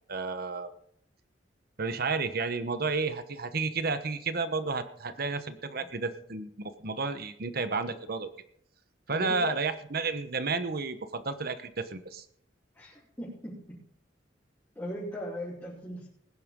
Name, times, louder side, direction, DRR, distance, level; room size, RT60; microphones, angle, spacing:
voice 1, 0.1-0.7 1.8-8.3 9.1-12.2, right 4 dB, 55° right, 11 dB, 1.1 m, -32 dB
voice 2, 9.1-9.6 12.7-13.5 14.8-16.1, equal, 15° left, -8 dB, 4.0 m, -38 dB
20.0 x 11.0 x 3.8 m, 0.64 s
head